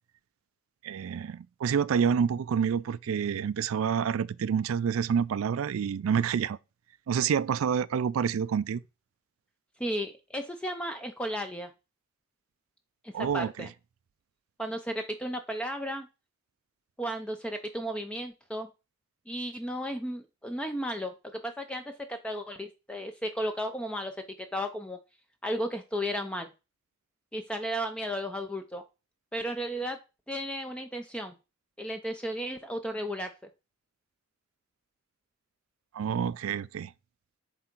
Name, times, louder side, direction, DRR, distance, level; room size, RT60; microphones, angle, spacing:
voice 1, 0.8-6.6 7.1-8.8 13.1-13.7 35.9-36.9, right 7 dB, 85° right, 0.4 m, -28 dB
voice 2, 9.8-11.7 13.0-13.7 14.6-16.1 17.0-18.7 19.3-21.8 22.1-24.2 24.5-25.0 25.4-26.5 27.3-28.8 29.3-30.0 30.3-31.3 31.8-33.3, equal, 5° left, 0.4 m, -34 dB
7.5 x 3.5 x 4.4 m
head